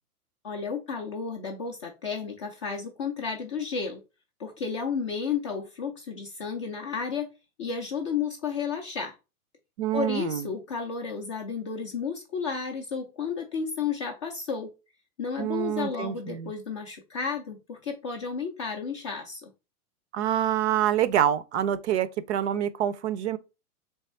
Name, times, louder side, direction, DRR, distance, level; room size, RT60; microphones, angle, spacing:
voice 1, 0.4-4.0 4.4-7.3 7.6-9.1 9.9-14.7 15.2-19.5, left 5 dB, 25° left, 0.3 m, -32 dB
voice 2, 9.8-10.5 15.4-16.5 20.1-23.4, right 10 dB, 50° right, 0.5 m, -26 dB
3.5 x 3.1 x 4.2 m
hypercardioid pair, 130°, 44 cm